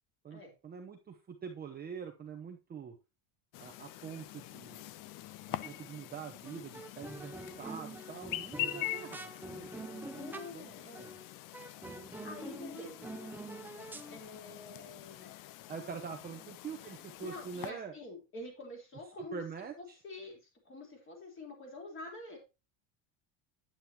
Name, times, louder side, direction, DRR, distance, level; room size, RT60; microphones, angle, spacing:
voice 1, 0.2-2.9 3.6-4.9 5.6-10.7 11.0-11.2 15.7-17.9 19.3-20.0, right 6 dB, 20° right, 3 dB, 0.9 m, -45 dB
Chirp tweet, 3.5-17.7, left 15 dB, 45° left, 0.6 m, -44 dB
sound 1, 5.6-6.0 6.4-10.6 10.9-11.3 11.5-14.2, right 2 dB, 5° right, 0.4 m, -46 dB
voice 2, 10.1-11.1 12.2-13.1 14.1-15.4 16.3-16.4 16.8-19.4 19.8-22.4, left 2 dB, 25° left, 1 dB, 3.8 m, -47 dB
9.0 x 8.9 x 2.9 m, 0.28 s
cardioid pair, 150°, 45 cm